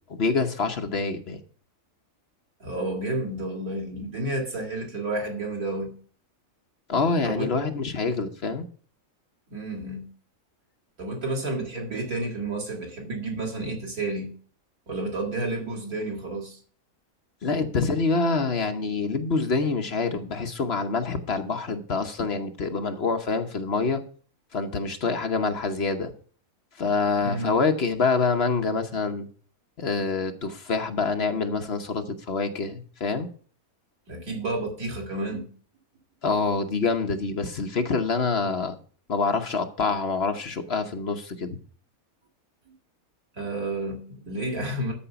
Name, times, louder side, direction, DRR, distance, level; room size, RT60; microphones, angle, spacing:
voice 1, 0.1-1.4 6.9-8.6 17.4-24.0 24.5-26.1 26.8-29.3 29.8-33.3 36.2-38.8 39.1-41.6, left 4 dB, 50° left, 1.1 m, -26 dB
voice 2, 2.6-5.9 7.2-7.7 9.5-10.1 11.0-14.3 14.9-16.6 27.2-27.5 34.1-35.5 43.4-44.9, right 2 dB, 90° right, 3.2 m, -31 dB
13.0 x 4.9 x 6.8 m
omnidirectional pair, 1.5 m